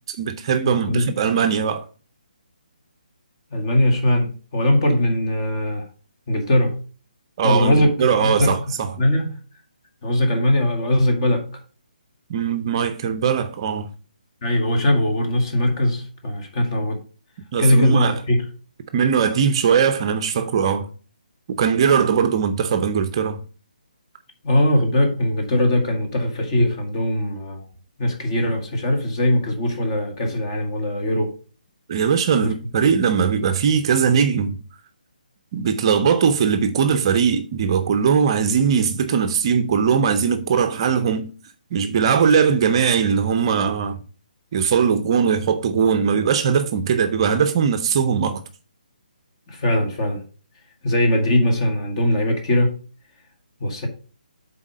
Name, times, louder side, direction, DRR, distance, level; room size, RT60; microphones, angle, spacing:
voice 1, 0.1-1.8 7.4-9.0 12.3-13.9 17.5-18.2 18.9-20.9 21.5-23.4 31.9-34.6 35.5-41.3 41.7-44.0 44.5-48.4, right 6 dB, 35° right, 0.6 m, -20 dB
voice 2, 0.6-1.1 3.5-5.9 6.3-6.8 7.4-8.5 9.0-9.4 10.0-11.5 14.4-17.0 17.6-18.4 24.4-27.6 28.0-31.4 32.4-32.5 49.5-50.2 50.8-52.8 53.6-53.9, left 1 dB, 30° left, 1.9 m, -20 dB
7.2 x 4.1 x 5.3 m
figure-of-eight pair, 140°, 5 cm